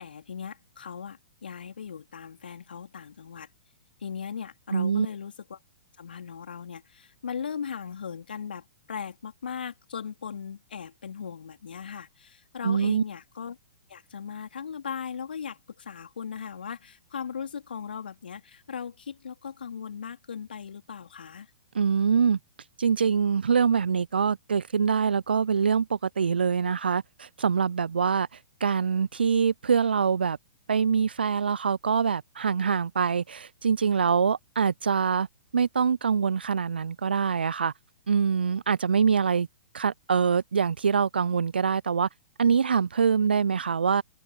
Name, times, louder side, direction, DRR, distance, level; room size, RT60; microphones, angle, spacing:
voice 1, 0.0-3.5 4.0-5.6 6.0-13.6 13.9-21.5, left 7 dB, 65° left, 3.9 m, -38 dB
voice 2, 4.7-5.1 12.6-13.0 21.7-22.4 22.8-28.3 28.6-30.4 30.7-35.3 35.5-37.7 38.1-39.5 39.7-42.1 42.4-44.0, right 6 dB, 70° right, 0.6 m, -24 dB
figure-of-eight pair, 115°, 6 cm